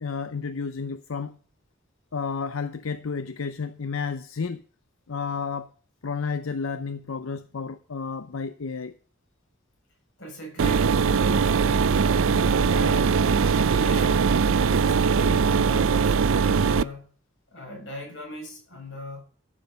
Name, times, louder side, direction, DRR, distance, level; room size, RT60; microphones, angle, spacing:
voice 1, 0.0-1.4 2.1-4.6 5.1-5.7 6.0-8.9, left 5 dB, 85° left, 0.6 m, -31 dB
voice 2, 10.2-12.0 12.4-14.3 14.6-17.1 17.5-19.2, equal, 65° left, 7.0 m, -38 dB
sound 1, 10.6-16.8, right 5 dB, 80° right, 0.5 m, -21 dB
13.5 x 7.2 x 5.3 m
head